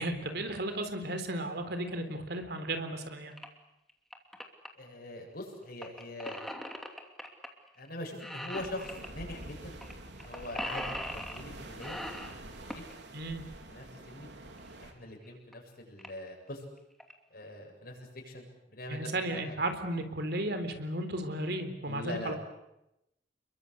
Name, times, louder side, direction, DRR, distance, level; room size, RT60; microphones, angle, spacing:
voice 1, 0.0-3.3 13.1-13.4 18.9-22.3, right 1 dB, 65° right, 8 dB, 3.9 m, -34 dB
sound 1, 3.3-3.5 3.9-4.7 5.8-7.5 7.8-7.9 8.2-9.1 9.8-9.9 10.2-11.5 11.8-12.9 14.6-14.7 15.3-15.4 15.5-15.6 16.0-16.3 16.8-17.1, equal, ahead, 2.7 m, -40 dB
voice 2, 4.8-6.4 7.8-9.8 10.2-12.0 12.6-12.8 13.7-14.3 14.8-16.6 17.3-19.5 21.8-22.4, left 1 dB, 55° left, 1 dB, 7.8 m, -43 dB
sound 2, 8.5-14.9, right 1 dB, 80° right, 3.7 m, -47 dB
29.5 x 22.5 x 8.3 m, 0.87 s
head